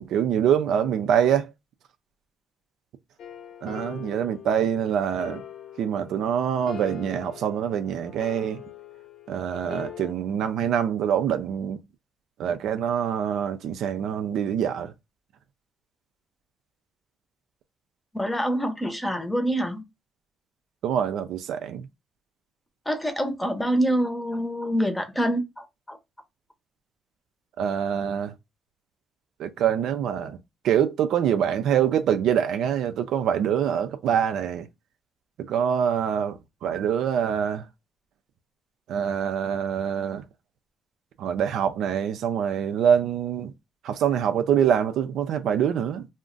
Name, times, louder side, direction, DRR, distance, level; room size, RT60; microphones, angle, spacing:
voice 1, 0.0-1.5 3.6-5.4 5.8-8.6 9.3-11.8 12.4-14.9 20.8-21.9 27.6-28.3 29.4-30.4 30.6-34.7 35.4-37.7 38.9-40.2 41.2-43.5 43.8-46.1, right 8 dB, 80° right, 0.4 m, -25 dB
sound 1, 3.2-10.1, left 9 dB, 75° left, 0.7 m, -42 dB
voice 2, 18.1-19.8 22.9-26.0, equal, 10° left, 0.7 m, -26 dB
2.4 x 2.1 x 3.7 m
cardioid pair, 90°, 0 cm